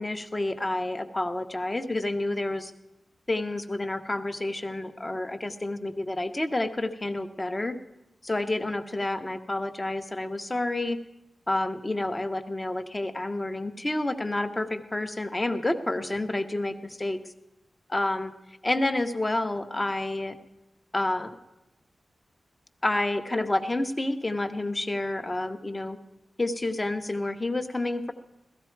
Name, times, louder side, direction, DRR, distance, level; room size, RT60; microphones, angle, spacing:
voice 1, 0.0-2.7 3.3-7.7 8.2-11.0 11.5-17.2 17.9-18.3 18.6-20.4 20.9-21.3 22.8-26.0 26.4-28.1, left 2 dB, 20° left, 8 dB, 0.8 m, -29 dB
17.0 x 14.0 x 4.6 m, 0.93 s
wide cardioid pair, 170°, 0 cm